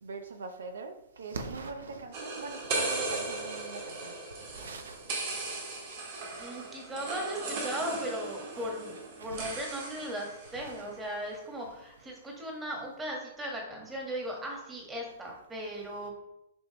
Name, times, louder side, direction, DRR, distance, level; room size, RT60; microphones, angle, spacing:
voice 1, 0.0-4.1 4.4-5.1 8.5-8.7 9.2-9.6 10.5-10.9, right 4 dB, 90° right, 0.8 m, -42 dB
sound 1, 2.1-10.9, right 3 dB, 50° right, 2.0 m, -37 dB
voice 2, 6.4-16.1, equal, 10° right, 1.6 m, -37 dB
6.3 x 5.3 x 3.1 m
hypercardioid pair, 145°, 0 cm